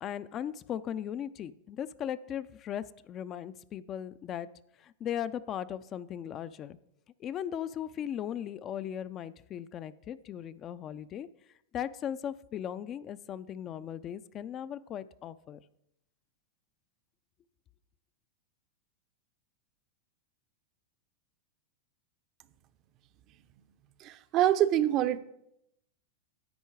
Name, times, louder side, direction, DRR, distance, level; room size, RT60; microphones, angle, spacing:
voice 1, 0.0-4.5 4.8-6.8 7.2-11.3 11.7-15.6, left 9 dB, 35° left, 15 dB, 0.4 m, -38 dB
voice 2, 24.0-25.2, right 12 dB, 40° right, 13 dB, 0.6 m, -25 dB
10.5 x 8.3 x 4.6 m, 0.79 s
hypercardioid pair, 125°, 0 cm